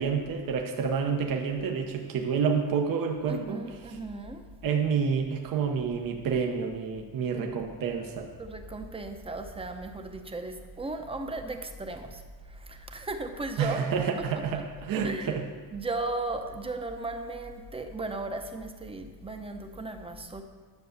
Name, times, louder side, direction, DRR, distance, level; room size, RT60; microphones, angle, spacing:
voice 1, 0.0-4.0 4.6-8.3 13.6-15.4, right 6 dB, 60° right, 2 dB, 1.1 m, -29 dB
voice 2, 3.3-4.4 8.4-12.2 12.6-13.8 15.0-15.3 15.7-20.4, right 2 dB, 15° right, 6 dB, 0.8 m, -36 dB
10.5 x 6.8 x 6.6 m, 1.5 s
cardioid pair, 145°, 39 cm